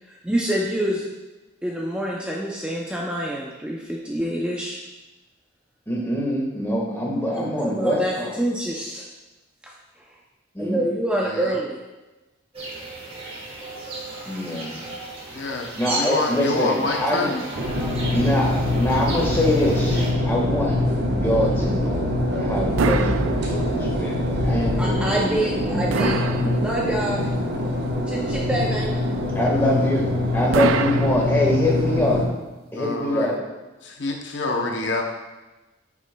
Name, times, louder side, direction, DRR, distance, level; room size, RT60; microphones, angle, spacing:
voice 1, 0.1-1.1 1.6-4.8 7.3-9.1 9.6-9.7 10.6-11.8 24.8-26.2 26.6-27.3 28.1-28.9, right 1 dB, 5° right, -3 dB, 0.4 m, -26 dB
voice 2, 5.9-8.3 10.5-10.8 14.3-14.8 15.8-17.3 18.1-20.8 21.1-26.5 29.3-30.0 30.3-32.2 32.7-33.3, left 1 dB, 10° left, -3 dB, 1.4 m, -24 dB
voice 3, 11.2-11.6 15.3-17.4 32.8-33.3 33.8-35.0, left 2 dB, 60° left, 2 dB, 0.7 m, -27 dB
sound 1, 12.5-20.1, right 2 dB, 30° right, 1.2 m, -34 dB
sound 2, 17.5-32.2, left 1 dB, 55° right, 1.1 m, -24 dB
sound 3, 22.8-24.0 25.9-27.1 30.5-31.8, right 5 dB, 85° right, 0.4 m, -26 dB
9.5 x 6.1 x 2.2 m, 1.1 s
head